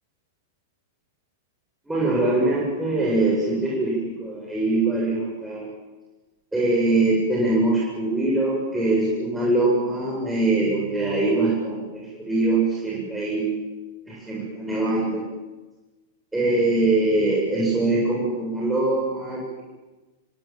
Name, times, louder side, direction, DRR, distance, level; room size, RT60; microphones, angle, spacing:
voice 1, 1.9-5.7 6.5-13.6 14.1-15.2 16.3-19.6, right 2 dB, 5° right, -5 dB, 7.6 m, -23 dB
27.0 x 25.0 x 7.5 m, 1.2 s
figure-of-eight pair, 100°, 0 cm